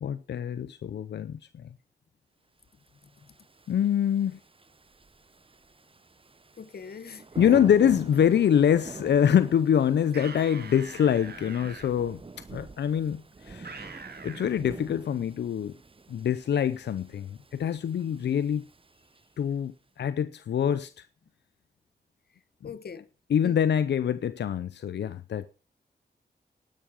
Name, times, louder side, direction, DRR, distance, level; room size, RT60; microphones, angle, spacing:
voice 1, 0.0-1.7 3.7-4.4 7.4-12.2 12.5-15.7 16.1-18.7 19.4-21.1 23.3-25.5, left 9 dB, 85° left, 0.6 m, -25 dB
voice 2, 3.0-3.3 6.6-7.3 22.6-23.1 23.4-23.6, left 6 dB, 65° left, 1.2 m, -42 dB
Thunder / Rain, 3.0-19.6, right 3 dB, 30° right, 0.9 m, -46 dB
sound 1, 10.1-11.9 13.6-14.5, right 4 dB, 70° right, 2.4 m, -43 dB
11.5 x 10.5 x 5.1 m
cardioid pair, 55°, 17 cm